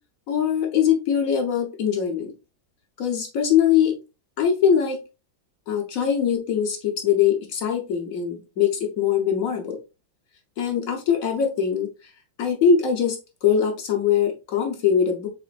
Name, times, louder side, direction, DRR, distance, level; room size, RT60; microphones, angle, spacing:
voice 1, 0.3-2.3 3.0-4.0 4.4-5.0 5.7-9.8 10.6-11.9 12.4-13.2 13.4-15.3, left 8 dB, 55° left, 3 dB, 1.1 m, -22 dB
5.0 x 3.7 x 2.4 m, 0.28 s
omnidirectional pair, 2.1 m